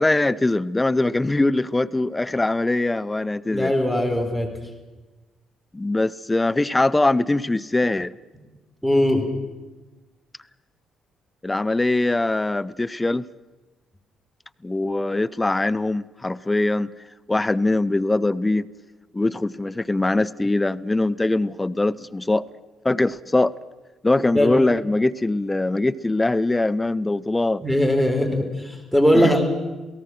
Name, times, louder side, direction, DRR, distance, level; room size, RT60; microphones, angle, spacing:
voice 1, 0.0-3.7 5.7-8.1 11.4-13.2 14.6-16.9 17.3-18.7 19.1-22.5 22.8-23.5 24.0-27.6 29.1-29.4, left 2 dB, 15° left, 13 dB, 0.7 m, -22 dB
voice 2, 3.5-4.5 8.8-9.2 24.3-24.5 27.6-29.4, equal, ahead, 4 dB, 4.1 m, -20 dB
28.5 x 18.0 x 6.3 m, 1.2 s
figure-of-eight pair, 45°, 0 cm